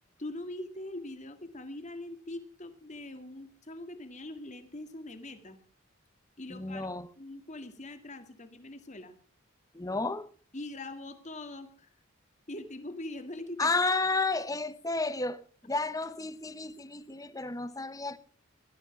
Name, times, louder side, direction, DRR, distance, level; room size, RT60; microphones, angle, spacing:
voice 1, 0.2-5.6 6.4-6.9 7.2-9.1 10.5-11.9 12.5-13.7, left 1 dB, 35° left, 9 dB, 2.0 m, -42 dB
voice 2, 6.5-7.1 9.7-10.3 13.6-18.2, left 3 dB, 15° left, 15 dB, 0.9 m, -32 dB
17.5 x 13.0 x 6.0 m, 0.43 s
head